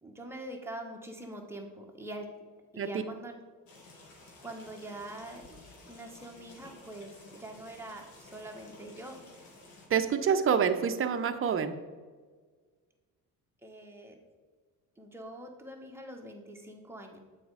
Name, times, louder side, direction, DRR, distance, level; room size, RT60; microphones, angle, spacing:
voice 1, 0.0-2.4 2.7-3.4 4.4-5.6 5.9-9.2 13.6-14.2 15.0-17.2, right 1 dB, 5° right, 1 dB, 1.3 m, -44 dB
sound 1, 3.7-9.9, left 2 dB, 80° left, 2.1 m, -53 dB
voice 2, 9.9-11.7, right 7 dB, 35° right, 8 dB, 0.7 m, -27 dB
7.7 x 4.2 x 4.9 m, 1.5 s
cardioid pair, 85°, 35 cm